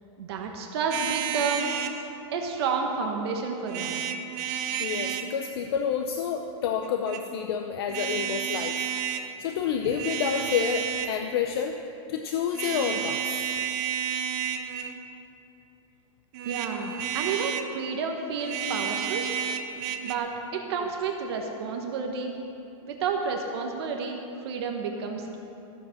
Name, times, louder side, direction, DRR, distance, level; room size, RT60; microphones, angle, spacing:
voice 1, 0.2-2.1 2.3-4.0 16.4-19.2 20.0-22.3 22.8-25.4, right 5 dB, 50° right, 2 dB, 1.1 m, -30 dB
sound 1, 0.9-2.0 3.7-5.3 6.8-7.2 7.9-9.3 9.8-11.2 12.5-15.0 16.3-17.7 18.4-20.1, right 9 dB, 30° right, 0.6 m, -31 dB
voice 2, 4.8-9.1 9.4-11.8 12.1-13.2 20.8-20.9, left 7 dB, 45° left, 5 dB, 0.6 m, -29 dB
14.0 x 7.5 x 7.1 m, 2.9 s
supercardioid pair, 175°, 17 cm